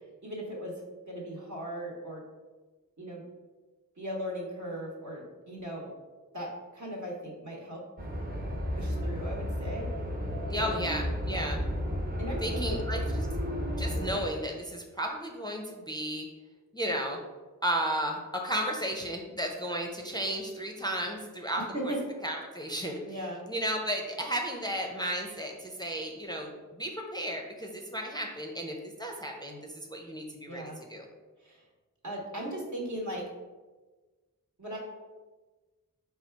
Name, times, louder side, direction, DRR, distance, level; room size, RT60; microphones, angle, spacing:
voice 1, 0.2-2.2 3.0-3.2 4.0-5.9 6.3-7.8 8.7-9.9 10.5-10.9 11.2-11.5 12.2-12.7 21.7-22.0 23.0-23.4 30.4-30.8 31.4-31.6 32.0-33.3 34.6-34.8, equal, 55° right, -2 dB, 1.1 m, -38 dB
sound 1, 8.0-14.2, equal, 25° right, 0.8 m, -33 dB
voice 2, 10.5-11.6 12.4-13.0 13.8-16.3 16.7-17.2 17.6-21.9 22.2-23.0 23.5-31.1, equal, 10° left, 1 dB, 0.5 m, -34 dB
4.2 x 2.3 x 4.4 m, 1.3 s
wide cardioid pair, 45°, 34 cm